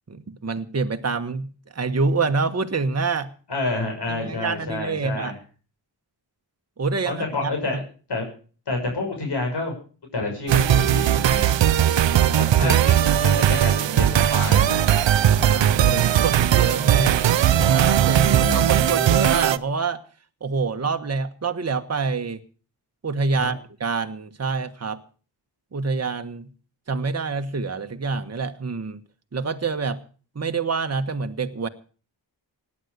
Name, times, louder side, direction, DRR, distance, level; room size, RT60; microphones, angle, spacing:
voice 1, 0.1-3.3 4.1-5.3 6.8-7.8 12.0-12.8 15.4-17.3 17.6-20.0 20.4-22.4 23.0-25.0 25.7-26.5 26.9-29.0 29.3-30.0 30.3-31.7, right 4 dB, 35° right, 7 dB, 1.3 m, -26 dB
voice 2, 3.5-5.3 7.1-7.8 8.1-8.3 8.7-9.7 10.1-11.6 12.4-14.8 18.1-19.1 23.4-23.5, left 2 dB, 65° left, 2 dB, 6.2 m, -29 dB
sound 1, 10.5-19.6, right 10 dB, 80° right, 0.8 m, -18 dB
17.5 x 9.9 x 6.7 m, 0.40 s
cardioid pair, 70°, 44 cm